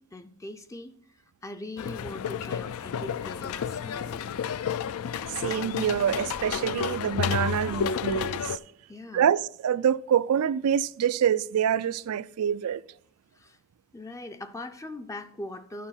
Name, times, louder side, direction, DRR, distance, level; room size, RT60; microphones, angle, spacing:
voice 1, 0.0-4.3 5.5-5.6 8.9-9.3 13.3-13.6 13.9-15.9, left 2 dB, 15° left, 0.4 m, -41 dB
sound 1, 1.8-8.6, left 7 dB, 75° left, 0.4 m, -31 dB
voice 2, 5.4-8.6 9.1-12.8, right 8 dB, 85° right, 0.4 m, -26 dB
11.0 x 4.4 x 5.7 m
head